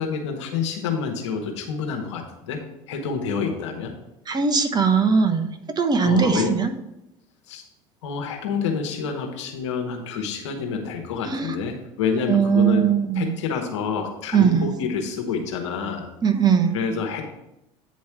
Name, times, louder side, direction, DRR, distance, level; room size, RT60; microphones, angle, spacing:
voice 1, 0.0-3.9 6.0-6.5 7.5-7.6 8.0-12.8 13.1-16.1 16.7-17.2, left 5 dB, 85° left, 3 dB, 1.3 m, -28 dB
voice 2, 4.3-5.5 5.8-6.7 11.3-11.5 12.3-13.4 14.3-14.7 16.2-16.8, right 6 dB, 30° right, 7 dB, 0.9 m, -20 dB
9.1 x 3.2 x 5.9 m, 0.88 s
hypercardioid pair, 85°, 15 cm